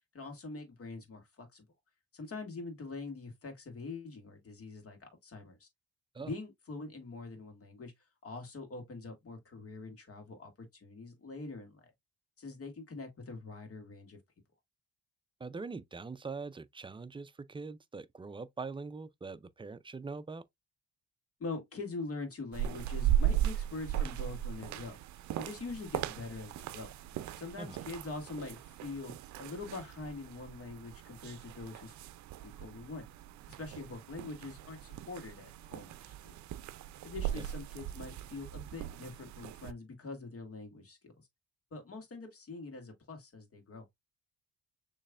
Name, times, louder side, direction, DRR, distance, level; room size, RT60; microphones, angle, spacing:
voice 1, 0.1-1.7 2.1-5.7 6.2-7.9 8.2-11.9 12.4-14.2 21.4-25.0 25.4-26.9 27.4-32.0 32.4-33.1 33.5-36.4 37.0-41.1 41.7-43.9, left 3 dB, 50° left, 2.1 m, -44 dB
voice 2, 15.4-20.4 27.6-27.8 37.4-37.5, right 4 dB, 15° right, 0.4 m, -43 dB
sound 1, 22.5-39.7, right 11 dB, 70° right, 0.5 m, -38 dB
6.5 x 3.2 x 2.4 m
cardioid pair, 90°, 30 cm